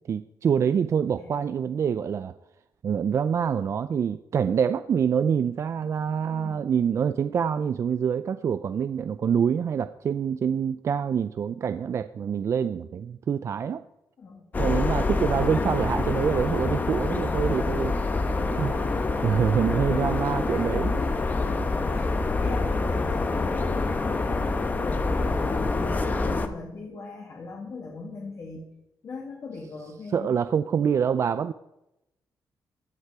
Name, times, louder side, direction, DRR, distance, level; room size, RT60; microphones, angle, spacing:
voice 1, 0.1-2.3 2.8-13.8 14.6-17.9 18.6-21.0 30.1-31.5, right 7 dB, 40° right, 12 dB, 0.4 m, -26 dB
voice 2, 6.3-6.7 14.2-14.5 18.3-18.8 19.9-20.6 21.0-28.7 29.0-30.4, left 4 dB, 45° left, -1 dB, 2.1 m, -39 dB
sound 1, 14.5-26.5, left 3 dB, 25° left, 0.9 m, -26 dB
16.0 x 9.5 x 4.8 m, 0.89 s
wide cardioid pair, 175°, 7 cm